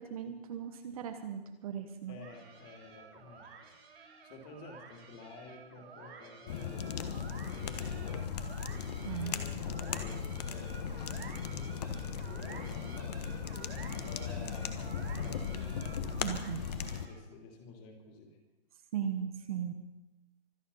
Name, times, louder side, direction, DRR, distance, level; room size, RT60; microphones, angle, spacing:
voice 1, 0.0-2.2 9.0-9.4 16.2-16.7 18.9-19.7, right 8 dB, 35° right, 6 dB, 1.2 m, -37 dB
voice 2, 2.0-3.8 4.2-6.8 7.5-8.2 9.2-11.0 12.3-15.8 17.0-18.4, left 3 dB, 25° left, 2 dB, 3.0 m, -51 dB
sound 1, 2.2-17.3, right 5 dB, 70° right, 4.5 m, -51 dB
sound 2, 6.5-17.1, left 7 dB, 40° left, 1.3 m, -37 dB
25.0 x 9.6 x 5.6 m, 1.0 s
hypercardioid pair, 155°, 32 cm